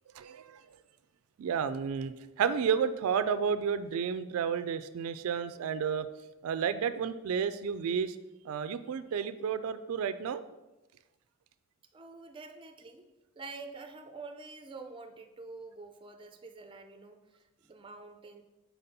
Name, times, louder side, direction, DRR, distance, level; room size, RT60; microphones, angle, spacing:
voice 1, 0.1-0.6 1.4-6.1 6.4-8.2 8.4-10.4, right 7 dB, 90° right, 12 dB, 0.3 m, -31 dB
voice 2, 11.9-13.1 13.4-18.4, right 3 dB, 25° right, 6 dB, 0.4 m, -47 dB
4.2 x 4.2 x 5.3 m, 1.0 s
head